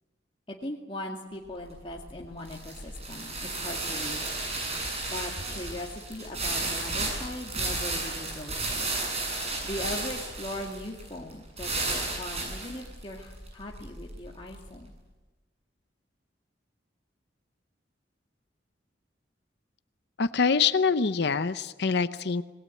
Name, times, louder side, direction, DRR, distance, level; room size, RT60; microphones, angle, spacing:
voice 1, 0.5-4.3 5.1-9.0 9.6-14.9, left 1 dB, 30° left, -2 dB, 2.3 m, -39 dB
sound 1, 1.5-14.7, right 2 dB, 35° right, 7.9 m, -33 dB
voice 2, 20.2-22.4, left 5 dB, 65° left, 12 dB, 0.7 m, -25 dB
27.0 x 20.5 x 8.4 m, 1.2 s
head